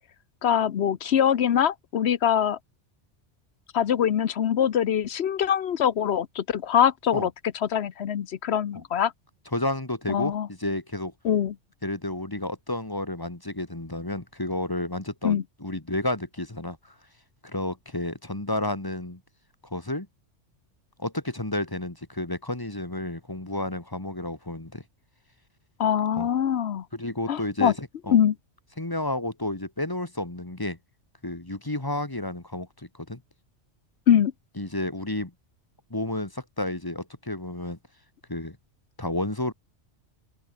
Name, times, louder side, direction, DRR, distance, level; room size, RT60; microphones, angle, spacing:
voice 1, 0.4-2.6 3.7-7.3 7.6-9.1 10.1-10.5 11.2-11.5 15.2-15.4 25.8-26.8 27.3-27.7 28.1-28.3 34.1-34.3, left 9 dB, 65° left, 1.0 m, -23 dB
voice 2, 9.5-11.1 11.8-16.9 17.4-19.2 19.6-20.1 21.0-24.8 26.2-26.3 26.9-28.2 28.8-30.8 31.2-33.2 34.6-35.3 35.9-37.8 38.3-38.6 39.0-39.5, left 1 dB, 20° left, 1.9 m, -31 dB
open air
omnidirectional pair, 1.2 m